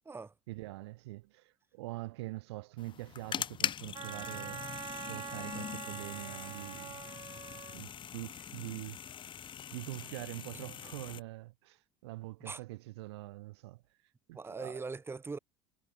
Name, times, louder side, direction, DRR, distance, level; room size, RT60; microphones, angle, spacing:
voice 1, 0.5-4.6 5.0-7.0 7.7-9.0 9.7-13.8 14.3-14.8, right 19 dB, 75° right, 1.0 m, -44 dB
sound 1, 2.8-11.2, left 9 dB, 35° left, 0.7 m, -42 dB
Wind instrument woodwind instrument, 3.9-7.8, right 9 dB, 30° right, 0.4 m, -45 dB
voice 2, 14.3-15.4, right 4 dB, 15° right, 1.0 m, -41 dB
hypercardioid pair, 65°, 14 cm